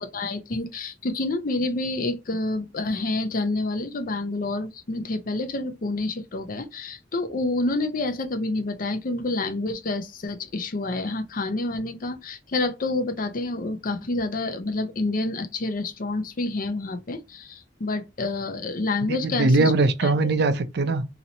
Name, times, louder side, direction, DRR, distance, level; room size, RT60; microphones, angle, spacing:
voice 1, 0.0-19.7 20.0-20.1, left 2 dB, 50° left, 0.6 m, -28 dB
voice 2, 19.0-21.0, right 2 dB, 60° right, 0.5 m, -21 dB
2.9 x 2.8 x 4.0 m
head